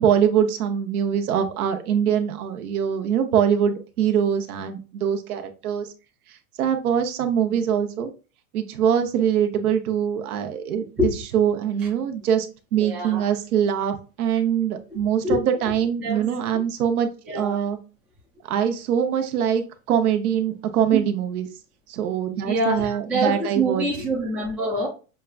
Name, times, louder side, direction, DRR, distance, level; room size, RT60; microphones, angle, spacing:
voice 1, 0.0-5.9 6.3-8.1 8.5-17.1 17.3-17.8 18.4-21.5 21.9-23.9, right 8 dB, 75° right, 0.9 m, -23 dB
voice 2, 12.8-13.2 15.2-15.7 16.0-16.6 17.2-17.6 20.9-21.0 22.4-24.9, right 1 dB, 5° right, 0.3 m, -25 dB
6.5 x 2.3 x 2.4 m
hypercardioid pair, 130°, 44 cm